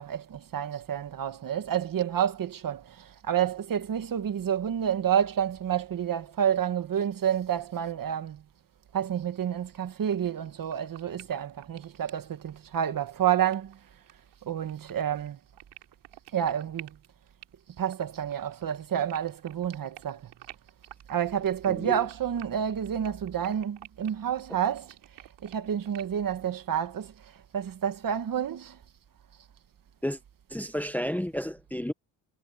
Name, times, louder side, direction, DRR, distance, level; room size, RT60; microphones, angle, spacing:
voice 1, 0.0-8.4 8.9-13.8 14.4-15.4 16.3-17.0 17.8-20.3 21.1-24.9 25.4-27.1 27.5-28.8, right 9 dB, 45° right, 1.8 m, -29 dB
sound 1, 10.1-10.2 10.4-26.1, right 15 dB, 80° right, 5.6 m, -49 dB
voice 2, 21.7-22.0 30.0-30.2 30.5-31.9, equal, 5° left, 1.1 m, -31 dB
cardioid pair, 110°, 47 cm